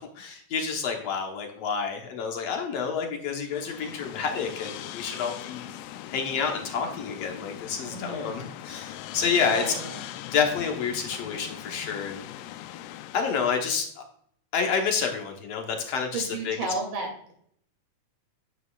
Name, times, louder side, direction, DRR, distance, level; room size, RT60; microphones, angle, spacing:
voice 1, 0.0-5.8 6.1-9.7 10.3-12.2 13.1-14.0 14.5-16.6, left 6 dB, 65° left, 3 dB, 1.9 m, -29 dB
sound 1, 3.5-13.6, left 12 dB, 85° left, 2.2 m, -41 dB
voice 2, 7.8-8.5 9.5-10.0 16.1-17.3, right 3 dB, 70° right, 1 dB, 4.0 m, -34 dB
9.2 x 9.2 x 2.3 m, 0.62 s
omnidirectional pair, 3.7 m